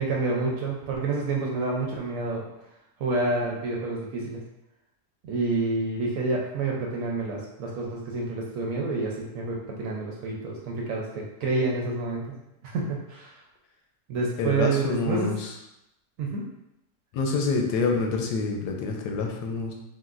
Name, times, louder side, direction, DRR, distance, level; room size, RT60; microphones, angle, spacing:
voice 1, 0.0-2.5 3.0-4.4 5.2-12.4 12.6-13.3 14.1-15.3 16.2-16.4, right 3 dB, 70° right, -2 dB, 0.9 m, -28 dB
voice 2, 14.4-15.5 17.1-19.7, left 4 dB, 90° left, 2 dB, 1.2 m, -27 dB
3.8 x 2.2 x 2.4 m, 0.87 s
omnidirectional pair, 1.7 m